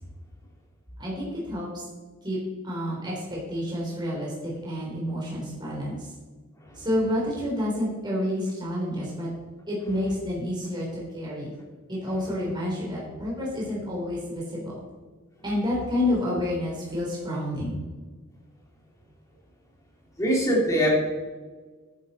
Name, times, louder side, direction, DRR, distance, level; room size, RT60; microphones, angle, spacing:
voice 1, 1.0-1.8 2.2-2.4 2.6-6.1 6.8-9.3 9.7-11.5 11.9-14.8 15.4-17.8, left 1 dB, 20° right, -5 dB, 3.7 m, -29 dB
voice 2, 20.2-20.9, equal, 15° left, -3 dB, 3.4 m, -22 dB
14.0 x 9.9 x 4.3 m, 1.4 s
head